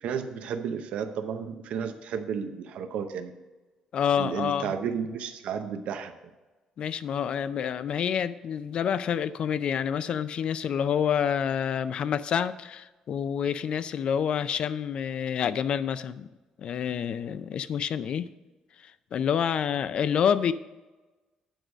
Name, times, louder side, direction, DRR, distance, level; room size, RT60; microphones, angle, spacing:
voice 1, 0.0-3.3 4.2-6.1, right 7 dB, 70° right, 7 dB, 0.7 m, -32 dB
voice 2, 3.9-4.7 6.8-16.3 16.6-18.3 19.1-20.5, left 8 dB, 50° left, 14 dB, 0.4 m, -28 dB
9.1 x 4.7 x 6.3 m, 1.2 s
cardioid pair, 150°, 2 cm